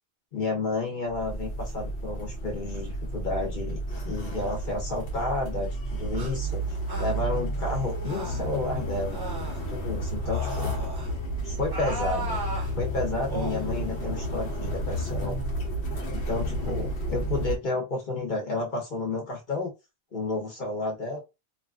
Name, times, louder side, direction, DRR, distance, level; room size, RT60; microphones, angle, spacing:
voice 1, 0.3-3.8 4.0-6.6 6.9-9.2 9.7-10.7 11.4-12.4 12.8-15.4 16.1-19.7 20.1-21.2, left 3 dB, 50° left, 0 dB, 0.9 m, -31 dB
sound 1, 1.1-17.6, right 1 dB, 80° left, 1.1 m, -31 dB
sound 2, 6.1-6.3 6.9-7.2 8.0-8.5 9.1-9.6 10.2-11.1 11.7-12.7 13.3-13.6, right 1 dB, 25° right, 0.5 m, -36 dB
2.8 x 2.5 x 2.3 m, 0.25 s
omnidirectional pair, 1.1 m